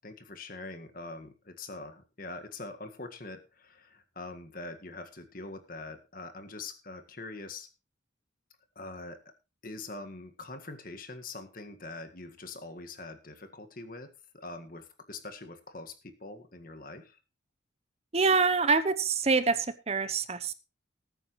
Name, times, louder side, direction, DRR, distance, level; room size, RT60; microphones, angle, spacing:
voice 1, 0.0-7.7 8.8-9.2 9.6-17.2, left 2 dB, 45° left, 7 dB, 1.8 m, -43 dB
voice 2, 18.1-20.5, right 4 dB, 35° right, 13 dB, 0.8 m, -26 dB
20.0 x 9.2 x 3.2 m, 0.29 s
head